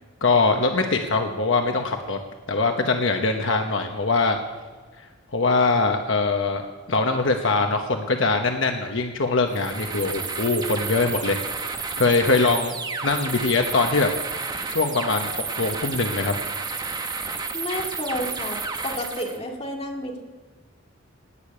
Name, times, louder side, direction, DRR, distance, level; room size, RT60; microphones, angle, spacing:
voice 1, 0.2-2.2 2.5-4.4 5.3-11.4 12.0-12.7 13.0-14.1 14.7-16.3, left 3 dB, 70° left, 4 dB, 1.1 m, -22 dB
sound 1, 9.5-19.4, right 4 dB, 20° right, 1.0 m, -31 dB
voice 2, 17.5-20.2, left 1 dB, 30° left, 0 dB, 2.2 m, -31 dB
18.5 x 6.8 x 8.8 m, 1.4 s
head